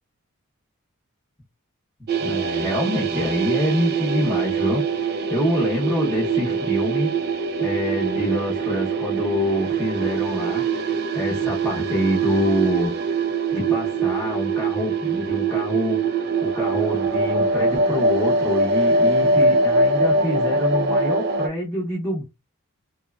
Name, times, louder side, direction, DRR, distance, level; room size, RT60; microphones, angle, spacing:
sound 1, 2.1-21.5, right 3 dB, 45° right, 0.4 m, -23 dB
voice 1, 2.2-7.1 7.6-10.6 11.1-12.9 13.5-22.2, equal, 5° left, 0.8 m, -26 dB
2.8 x 2.1 x 2.3 m
head